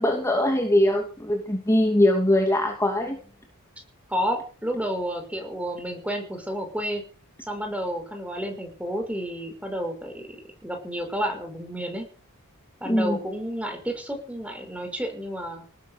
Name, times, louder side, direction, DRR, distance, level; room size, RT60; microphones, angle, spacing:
voice 1, 0.0-3.2 12.8-13.2, left 1 dB, 15° left, 2 dB, 2.7 m, -22 dB
voice 2, 4.1-7.0 7.4-12.1 12.8-15.6, equal, 5° right, 4 dB, 5.7 m, -31 dB
19.0 x 11.0 x 6.7 m, 0.40 s
head